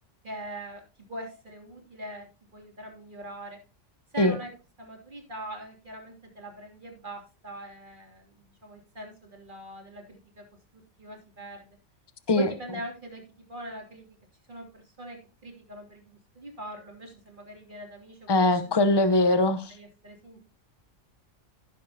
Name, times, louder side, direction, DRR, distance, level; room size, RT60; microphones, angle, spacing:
voice 1, 0.2-0.8 1.1-2.3 2.5-3.6 4.1-4.5 4.8-10.4 11.0-11.8 12.4-13.2 13.5-14.0 14.5-14.7 15.0-15.2 15.4-18.7 19.3-19.4 19.7-20.4, right 1 dB, 40° right, 3.0 m, -42 dB
voice 2, 18.3-19.7, left 2 dB, 25° left, 0.8 m, -21 dB
15.5 x 7.1 x 2.8 m
omnidirectional pair, 1.3 m